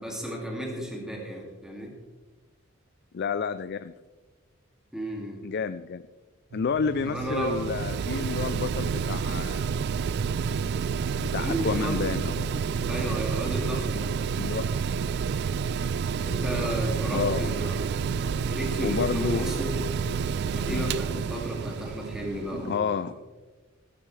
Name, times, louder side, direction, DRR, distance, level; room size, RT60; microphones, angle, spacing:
voice 1, 0.0-1.9 4.9-5.4 7.0-7.6 11.4-12.1 12.8-14.1 16.2-19.8 20.4-23.1, right 1 dB, 5° right, -2 dB, 2.4 m, -33 dB
voice 2, 3.1-3.9 5.4-6.0 6.5-9.7 11.2-12.6 14.4-14.8 17.1-17.6 18.8-19.4 20.7-20.9 22.5-23.2, left 5 dB, 55° left, 12 dB, 0.4 m, -30 dB
Mechanical fan, 6.5-22.8, right 6 dB, 55° right, 0.3 m, -29 dB
15.5 x 13.0 x 3.3 m, 1.3 s
head